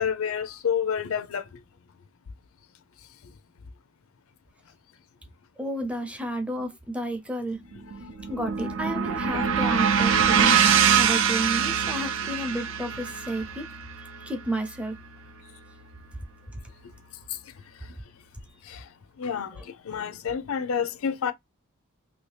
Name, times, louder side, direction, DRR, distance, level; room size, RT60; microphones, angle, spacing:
voice 1, 0.0-1.4 9.3-9.5 18.7-18.8 19.2-19.6 19.9-21.3, left 7 dB, 80° left, 0.5 m, -28 dB
voice 2, 5.6-7.6 8.3-13.7 14.2-15.0 19.5-19.6, right 1 dB, 5° right, 0.5 m, -31 dB
sound 1, 7.7-16.0, right 7 dB, 65° right, 0.5 m, -24 dB
2.9 x 2.7 x 3.2 m
head